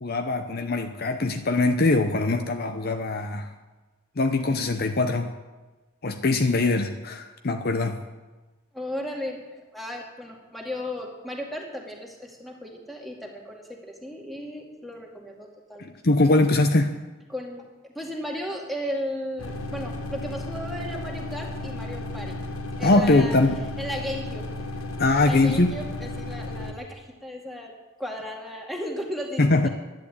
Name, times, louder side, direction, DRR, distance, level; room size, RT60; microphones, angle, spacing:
voice 1, 0.0-3.5 4.2-5.3 6.0-8.0 15.8-16.9 22.8-23.6 25.0-25.7 29.4-29.7, left 2 dB, 50° left, 7 dB, 0.8 m, -22 dB
voice 2, 8.7-9.4 9.7-15.9 17.3-22.4 22.8-23.4 23.8-24.4 25.2-27.7 28.0-29.4, equal, ahead, -1 dB, 2.2 m, -35 dB
sound 1, 19.4-26.7, left 1 dB, 85° left, 1.5 m, -34 dB
11.5 x 10.5 x 8.5 m, 1.2 s
head